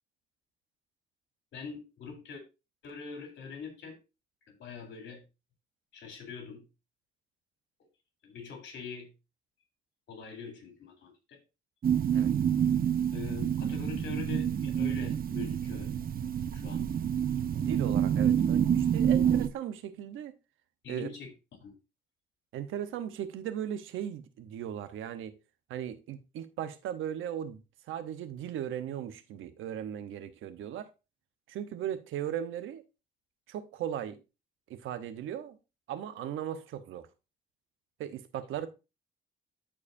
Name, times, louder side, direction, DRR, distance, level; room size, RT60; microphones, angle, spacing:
voice 1, 1.5-2.4 2.8-4.0 4.5-5.2 5.9-6.7 8.2-9.1 10.1-11.4 13.1-15.9 16.5-16.9 18.2-18.3 20.8-21.3 21.6-21.7, left 6 dB, 65° left, 3.5 m, -43 dB
sound 1, 11.8-19.5, right 9 dB, 45° right, 0.8 m, -28 dB
voice 2, 17.5-20.3 20.9-21.1 22.5-25.4 25.7-27.6 27.9-30.9 31.5-32.8 33.5-34.2 34.7-35.6 35.9-37.1 38.0-38.7, right 10 dB, 85° right, 1.0 m, -37 dB
13.5 x 4.8 x 2.7 m
cardioid pair, 90°, 20 cm